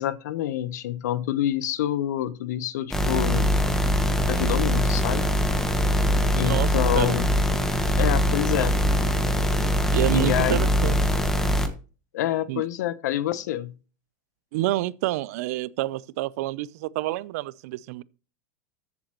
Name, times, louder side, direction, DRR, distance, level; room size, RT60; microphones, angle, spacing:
voice 1, 0.0-3.5 4.3-5.2 6.3-7.3 8.0-8.8 10.1-10.7 12.1-13.7, left 12 dB, 85° left, 0.9 m, -27 dB
sound 1, 2.9-11.7, equal, 5° left, 1.1 m, -22 dB
voice 2, 6.4-6.7 6.9-7.2 9.9-11.0 12.5-12.6 14.5-18.0, right 16 dB, 65° right, 0.5 m, -28 dB
14.0 x 7.9 x 3.0 m
supercardioid pair, 155°, 9 cm